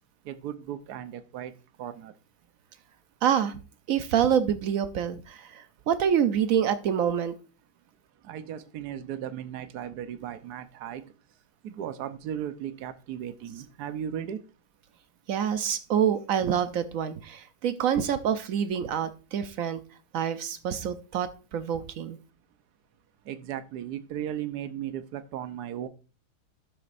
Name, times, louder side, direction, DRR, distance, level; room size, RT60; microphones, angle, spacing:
voice 1, 0.2-1.5 1.8-2.1 8.2-11.1 11.6-14.4 23.3-25.9, right 10 dB, 60° right, 11 dB, 1.2 m, -36 dB
voice 2, 3.2-3.6 3.9-7.3 15.3-19.8 20.1-22.2, right 8 dB, 80° right, 11 dB, 0.7 m, -26 dB
12.5 x 7.5 x 2.6 m, 0.34 s
omnidirectional pair, 2.3 m